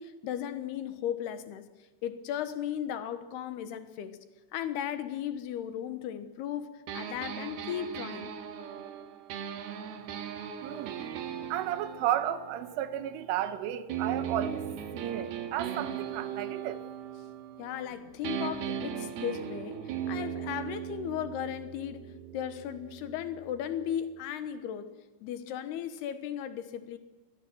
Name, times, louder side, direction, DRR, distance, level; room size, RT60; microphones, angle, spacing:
voice 1, 0.0-1.7 2.0-4.2 4.5-8.3 17.6-24.9 25.2-27.0, left 9 dB, 70° left, 11 dB, 2.8 m, -36 dB
sound 1, 6.9-13.4 13.9-17.9 18.2-24.0, right 8 dB, 60° right, 3.2 m, -38 dB
voice 2, 10.6-11.0 11.5-14.7 14.9-16.8, right 11 dB, 80° right, 11 dB, 3.8 m, -33 dB
26.0 x 21.0 x 7.9 m, 1.2 s
omnidirectional pair, 5.6 m